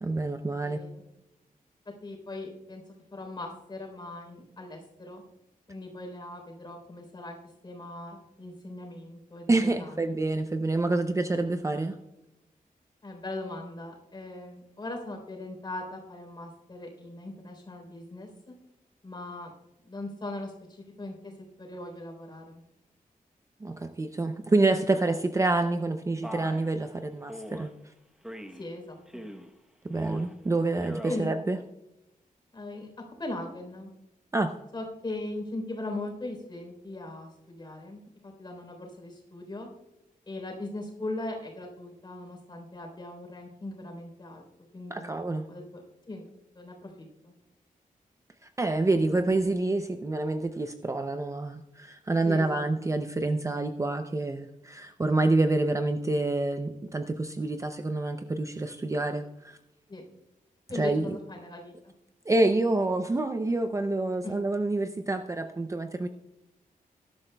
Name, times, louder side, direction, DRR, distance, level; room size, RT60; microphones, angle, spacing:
voice 1, 0.0-0.8 9.5-12.0 23.6-27.7 29.8-31.6 34.3-34.5 44.9-45.5 48.6-59.6 60.7-61.1 62.3-66.1, right 2 dB, 20° right, 7 dB, 0.5 m, -27 dB
voice 2, 0.6-1.0 2.0-2.8 3.1-5.2 5.7-7.4 7.6-10.2 13.0-18.3 19.0-19.5 19.8-21.3 21.6-22.6 28.5-29.2 31.1-31.3 32.5-32.9 33.2-33.9 34.7-39.7 40.3-44.5 44.7-45.1 45.5-45.8 46.1-46.3 46.6-47.3 52.2-52.6 59.9-60.0 60.7-61.9 64.2-64.4, left 2 dB, 30° left, 1 dB, 3.5 m, -39 dB
Male speech man speaking, 26.2-26.7 27.3-27.7 28.2-28.6 29.1-29.5 29.9-30.3 30.7-31.2, equal, 5° right, 0.9 m, -41 dB
19.0 x 11.5 x 2.2 m, 0.91 s
wide cardioid pair, 150°, 15 cm